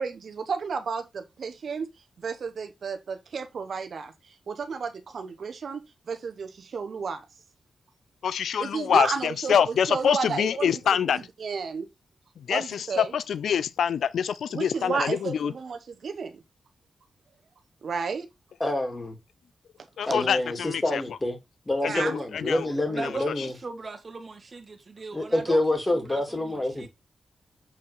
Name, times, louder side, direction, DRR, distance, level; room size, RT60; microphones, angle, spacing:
voice 1, 0.0-1.9 2.2-4.1 4.5-7.2 8.6-9.5 9.9-10.8 11.1-11.9 12.5-13.1 14.5-16.4 17.8-18.3 20.0-20.1 21.8-22.1, right 5 dB, 70° right, 1.1 m, -32 dB
voice 2, 8.2-11.3 12.4-15.5 20.0-21.0 21.8-22.7 23.0-23.4, left 8 dB, 85° left, 0.4 m, -26 dB
voice 3, 18.6-19.2 20.1-21.4 21.7-23.5 25.1-26.9, left 1 dB, 25° left, 3.1 m, -27 dB
voice 4, 22.9-26.9, right 3 dB, 50° right, 1.7 m, -39 dB
7.4 x 4.2 x 3.7 m
cardioid pair, 45°, 0 cm